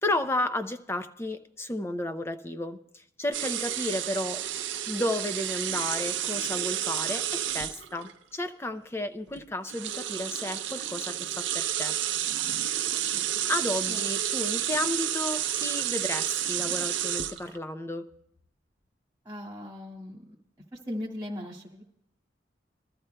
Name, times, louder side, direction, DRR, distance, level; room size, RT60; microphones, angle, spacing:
voice 1, 0.0-4.5 4.9-11.9 13.5-18.1, left 1 dB, 15° left, 9 dB, 0.5 m, -32 dB
sound 1, 3.3-8.1 9.3-9.4 9.7-17.6, right 11 dB, 85° right, 0.5 m, -30 dB
voice 2, 19.2-20.3 20.7-21.8, left 1 dB, 10° right, -2 dB, 1.8 m, -38 dB
23.0 x 13.0 x 2.2 m, 0.74 s
head